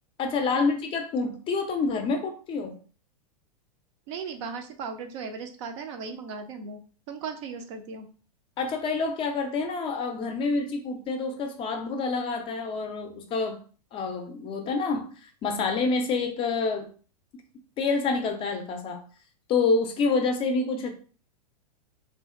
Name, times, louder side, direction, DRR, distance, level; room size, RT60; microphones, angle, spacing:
voice 1, 0.2-2.8 8.6-13.6 13.9-16.9 17.8-19.0 19.5-20.9, left 4 dB, 25° left, 5 dB, 0.5 m, -27 dB
voice 2, 4.1-6.8 7.1-8.1, right 5 dB, 45° right, 6 dB, 0.5 m, -37 dB
2.7 x 2.5 x 2.4 m, 0.39 s
figure-of-eight pair, 100°, 20 cm